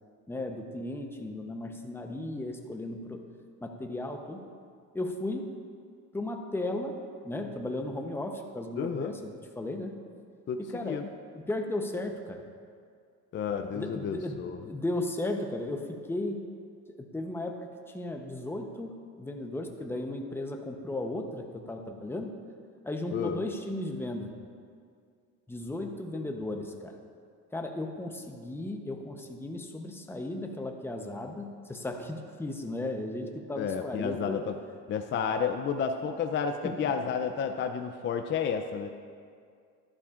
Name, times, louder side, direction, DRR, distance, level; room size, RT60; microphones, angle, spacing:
voice 1, 0.3-3.2 3.6-4.4 4.9-5.5 6.1-6.9 7.2-10.0 10.6-11.0 11.3-12.4 13.7-16.5 17.0-22.4 22.8-24.3 25.5-26.9 27.5-34.4 36.6-36.9, left 1 dB, 5° left, 3 dB, 0.8 m, -35 dB
voice 2, 8.8-9.1 10.5-11.1 13.3-14.6 23.1-23.4 33.6-34.5 34.9-38.9, left 6 dB, 35° left, 6 dB, 0.5 m, -31 dB
11.5 x 11.5 x 2.5 m, 2.2 s
cardioid pair, 110°, 32 cm